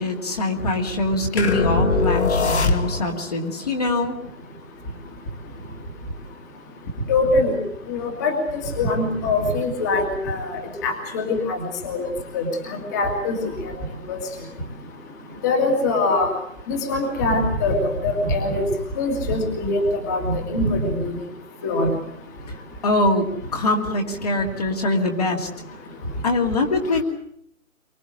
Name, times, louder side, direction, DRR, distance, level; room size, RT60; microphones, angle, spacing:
voice 1, 0.0-4.2 22.8-25.5 26.2-27.0, left 2 dB, 30° left, 2 dB, 2.1 m, -23 dB
sound 1, 1.4-3.3, left 3 dB, 55° left, 2.2 m, -21 dB
voice 2, 7.1-7.6 7.9-12.1 12.3-13.4 14.1-14.2 15.4-16.3 16.7-17.7 18.0-18.6 19.0-21.1 21.6-21.9, left 2 dB, 15° left, 2 dB, 2.1 m, -23 dB
24.0 x 21.0 x 7.7 m, 0.69 s
hypercardioid pair, 170°, 41 cm